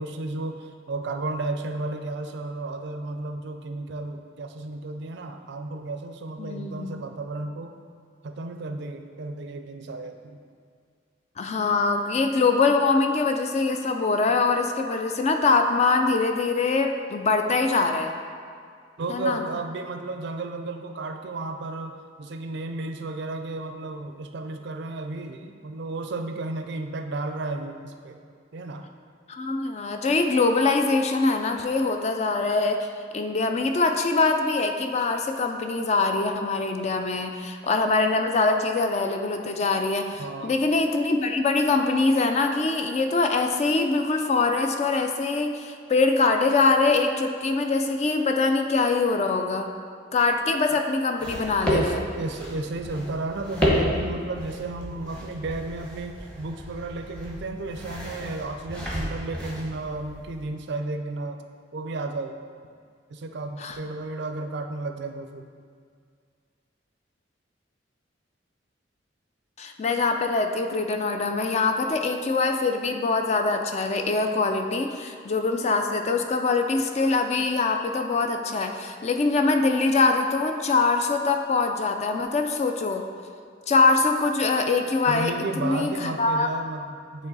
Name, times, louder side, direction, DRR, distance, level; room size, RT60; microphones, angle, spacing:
voice 1, 0.0-7.7 8.2-10.4 19.0-28.2 28.5-28.9 40.2-40.6 51.7-61.4 61.7-62.4 63.1-65.5 85.1-87.3, right 2 dB, 65° right, 6 dB, 0.4 m, -33 dB
voice 2, 6.4-7.0 11.4-18.1 19.1-19.4 29.3-32.9 33.1-49.7 50.1-52.0 63.6-63.8 69.6-83.1 83.7-86.5, left 3 dB, 35° left, 5 dB, 0.4 m, -23 dB
sound 1, 51.2-60.5, equal, 5° left, 0.9 m, -31 dB
8.5 x 3.0 x 4.0 m, 2.2 s
head